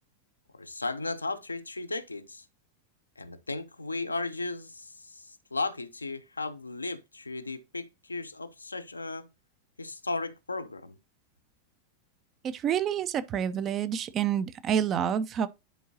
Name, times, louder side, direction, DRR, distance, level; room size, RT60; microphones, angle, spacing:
voice 1, 0.5-2.4 3.2-9.3 9.8-11.0, left 3 dB, 80° left, 0.7 m, -35 dB
voice 2, 12.4-15.5, right 8 dB, 30° right, 0.7 m, -28 dB
10.0 x 4.5 x 2.8 m
figure-of-eight pair, 90°, 0 cm